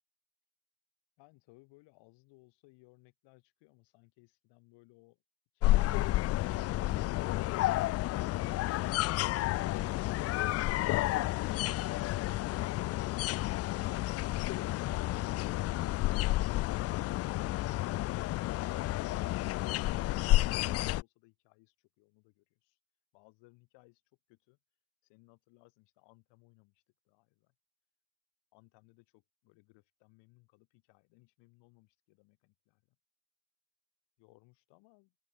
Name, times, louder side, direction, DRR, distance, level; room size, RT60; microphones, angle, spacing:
voice 1, 1.2-5.2 18.9-22.8 23.1-24.0 24.3-24.6 25.0-27.5 28.5-33.0 34.2-35.1, left 24 dB, 70° left, 7.6 m, -64 dB
sound 1, 5.6-21.0, left 17 dB, 35° left, 0.4 m, -31 dB
open air
supercardioid pair, 120°, 44 cm